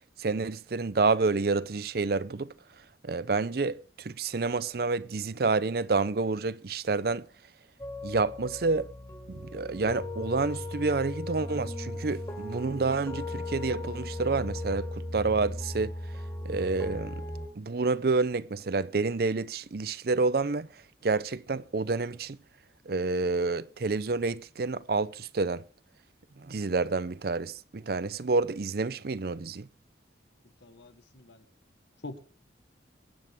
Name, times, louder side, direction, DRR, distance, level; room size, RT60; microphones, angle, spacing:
voice 1, 0.2-2.5 3.0-7.3 8.0-8.9 9.3-15.9 16.4-17.2 17.6-20.7 21.0-22.4 22.9-25.6 26.4-29.7, right 3 dB, 55° right, 0.5 m, -29 dB
sound 1, 7.8-17.5, left 1 dB, 20° left, 3.3 m, -37 dB
sound 2, 11.3-19.0, left 1 dB, ahead, 1.6 m, -53 dB
voice 2, 30.6-31.5 32.0-32.2, left 2 dB, 70° left, 1.5 m, -44 dB
23.0 x 9.5 x 3.6 m
head